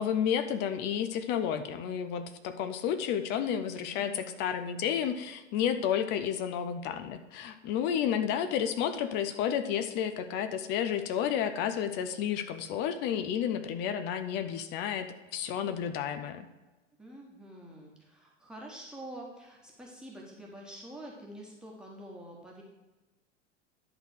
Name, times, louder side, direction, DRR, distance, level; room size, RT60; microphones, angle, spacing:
voice 1, 0.0-16.5, left 8 dB, 30° left, 9 dB, 0.5 m, -31 dB
voice 2, 3.9-4.4 17.0-22.6, right 1 dB, ahead, -2 dB, 1.3 m, -47 dB
10.5 x 3.9 x 6.4 m, 1.1 s
figure-of-eight pair, 90°, 37 cm